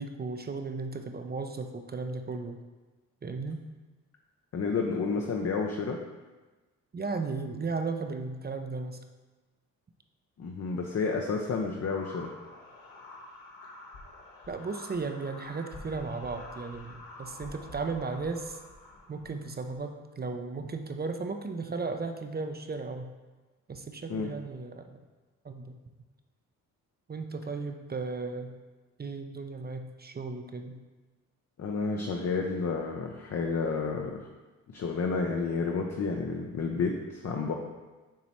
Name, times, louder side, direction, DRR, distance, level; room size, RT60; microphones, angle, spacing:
voice 1, 0.0-2.6 3.2-3.6 6.9-9.0 14.5-18.6 19.1-23.1 23.7-24.9 25.4-25.8 27.1-28.6 29.0-30.8, right 4 dB, 25° right, 6 dB, 0.6 m, -35 dB
voice 2, 4.5-6.0 10.4-12.3 24.1-24.3 31.6-34.3 34.7-37.5, left 4 dB, 45° left, 1 dB, 0.7 m, -30 dB
sound 1, 11.8-19.9, left 2 dB, 65° left, 1.2 m, -48 dB
7.3 x 3.0 x 4.2 m, 1.2 s
supercardioid pair, 60°, 37 cm